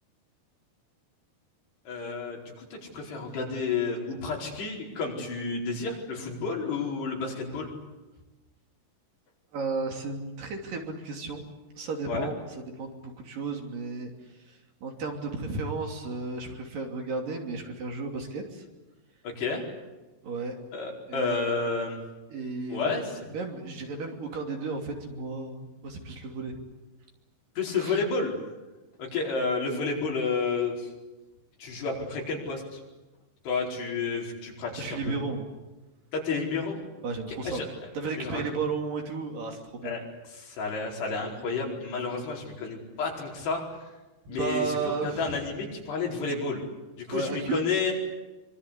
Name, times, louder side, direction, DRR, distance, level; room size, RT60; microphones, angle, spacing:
voice 1, 1.9-7.7 12.1-12.3 19.2-19.6 20.7-22.0 22.7-23.0 27.6-28.4 29.0-30.9 31.6-32.8 33.5-35.2 36.1-36.8 37.4-37.7 38.2-38.4 39.8-40.0 40.4-43.6 44.3-46.6 47.0-47.9, left 4 dB, 80° left, -1 dB, 6.9 m, -31 dB
voice 2, 9.5-11.4 11.8-12.9 13.2-18.6 20.2-20.6 21.1-21.4 22.3-26.6 27.7-28.0 34.8-35.5 37.0-37.6 37.9-39.9 44.3-45.5 47.1-47.6, right 4 dB, 55° right, 2 dB, 4.4 m, -34 dB
25.0 x 25.0 x 8.3 m, 1.1 s
omnidirectional pair, 4.7 m